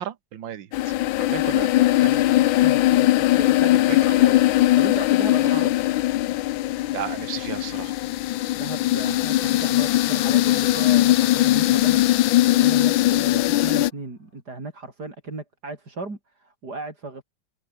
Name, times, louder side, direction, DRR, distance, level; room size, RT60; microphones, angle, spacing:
voice 1, 0.0-2.1 3.9-4.0 5.4-5.7 6.9-7.9, right 10 dB, 75° right, 1.9 m, -34 dB
sound 1, 0.7-13.9, left 15 dB, 85° left, 1.4 m, -20 dB
voice 2, 2.0-5.7 8.6-17.2, right 3 dB, 55° right, 5.4 m, -36 dB
sound 2, 9.0-14.0, left 4 dB, 50° left, 3.9 m, -44 dB
omnidirectional pair, 2.1 m